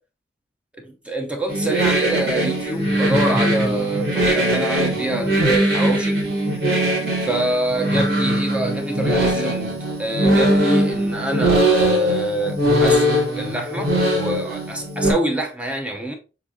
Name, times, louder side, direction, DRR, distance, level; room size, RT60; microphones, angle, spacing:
voice 1, 0.8-6.2 7.2-9.7 10.0-16.1, right 1 dB, 5° right, 0.8 m, -25 dB
sound 1, 1.5-15.1, right 1 dB, 60° right, 2.0 m, -20 dB
6.7 x 2.6 x 2.7 m
head